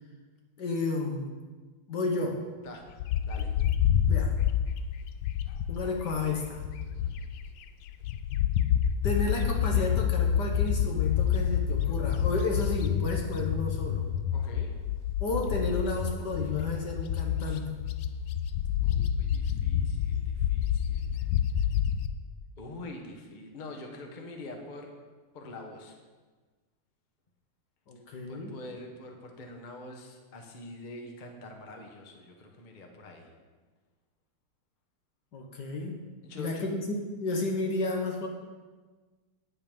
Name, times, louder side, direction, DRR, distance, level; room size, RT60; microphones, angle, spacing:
voice 1, 0.6-1.4 1.9-2.4 4.1-4.5 5.7-6.6 9.0-14.1 15.2-17.8 27.9-28.6 35.3-36.0 36.4-36.8 37.2-38.3, left 3 dB, 55° left, 2 dB, 1.5 m, -32 dB
Bird, 3.0-7.5 7.9-22.1, left 9 dB, 75° left, 1.1 m, -28 dB
voice 2, 14.3-14.7 17.4-17.6 18.8-21.3 21.5-21.7 22.6-24.9 25.3-25.9 28.3-33.3 36.2-36.7, left 2 dB, 30° left, 2 dB, 1.0 m, -45 dB
9.8 x 8.7 x 5.2 m, 1.4 s
omnidirectional pair, 2.4 m